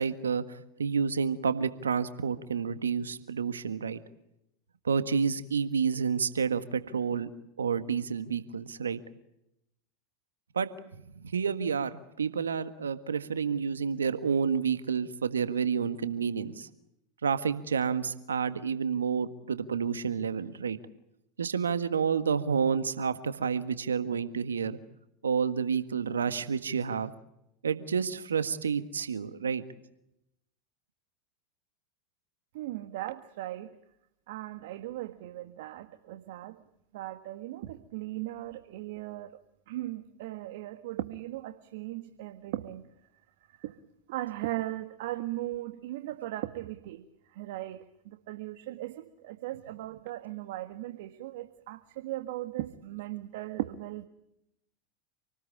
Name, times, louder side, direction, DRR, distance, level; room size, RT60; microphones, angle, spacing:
voice 1, 0.0-4.0 4.8-7.3 7.6-9.0 10.5-10.7 11.3-16.7 17.2-20.8 21.4-24.8 25.2-27.1 27.6-29.6, right 6 dB, 85° right, 11 dB, 1.5 m, -29 dB
voice 2, 32.5-33.8 34.3-36.6 36.9-39.4 39.7-42.8 43.5-43.8 44.1-54.0, right 15 dB, 65° right, 8 dB, 1.6 m, -38 dB
28.0 x 19.5 x 8.7 m, 0.82 s
hypercardioid pair, 85°, 0 cm